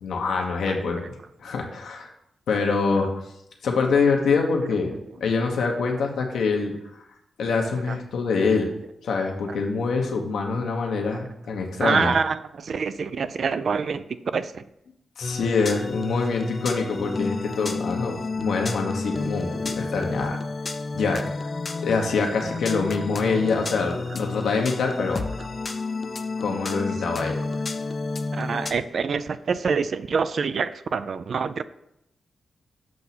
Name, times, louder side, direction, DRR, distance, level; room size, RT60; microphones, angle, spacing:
voice 1, 0.0-1.1 1.4-2.1 2.5-3.1 3.6-6.7 7.4-8.7 9.0-12.1 15.2-20.4 20.9-21.3 21.8-25.2 26.4-27.4, left 4 dB, 85° left, 1 dB, 1.1 m, -25 dB
voice 2, 11.8-14.0 14.3-14.6 27.0-27.1 28.3-31.6, right 5 dB, 65° right, 13 dB, 0.3 m, -26 dB
sound 1, 15.2-28.7, left 3 dB, 45° left, 0.5 m, -31 dB
7.6 x 2.8 x 5.9 m, 0.80 s
cardioid pair, 70°, 0 cm